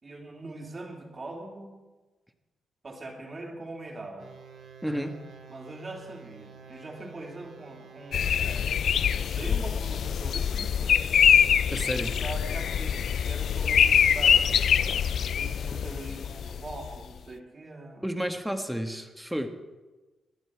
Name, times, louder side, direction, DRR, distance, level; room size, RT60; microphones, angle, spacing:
voice 1, 0.0-1.7 2.8-4.3 5.5-8.7 9.2-11.0 12.0-14.6 15.2-18.1, right 2 dB, 35° right, 1 dB, 3.1 m, -42 dB
sound 1, 4.2-9.4, right 5 dB, 70° right, 2.2 m, -50 dB
voice 2, 4.8-5.1 11.7-12.1 18.0-19.5, equal, 5° right, 6 dB, 1.5 m, -31 dB
sound 2, 8.1-17.0, left 8 dB, 70° left, 0.4 m, -24 dB
18.5 x 11.0 x 4.7 m, 1.2 s
cardioid pair, 75°, 0 cm